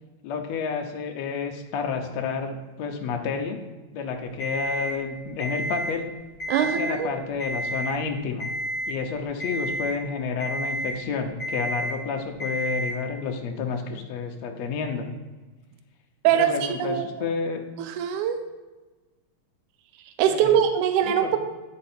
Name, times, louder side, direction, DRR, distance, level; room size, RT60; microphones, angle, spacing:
voice 1, 0.2-3.6 3.9-6.1 6.6-8.5 8.9-15.1 16.3-17.6 20.3-20.6 21.0-21.4, left 5 dB, 80° left, 3 dB, 1.5 m, -30 dB
Alarm, 4.4-4.9 5.4-5.9 6.3-6.9 7.4-7.9 8.4-8.9 9.4-9.9 10.4-10.9 11.4-11.9 12.4-12.9, equal, 25° left, 0.8 m, -30 dB
voice 2, 6.5-7.1 16.2-16.5 16.8-17.1 17.8-18.4 20.2-21.4, right 9 dB, 80° right, 8 dB, 1.9 m, -22 dB
10.5 x 4.3 x 4.3 m, 1.2 s
omnidirectional pair, 3.9 m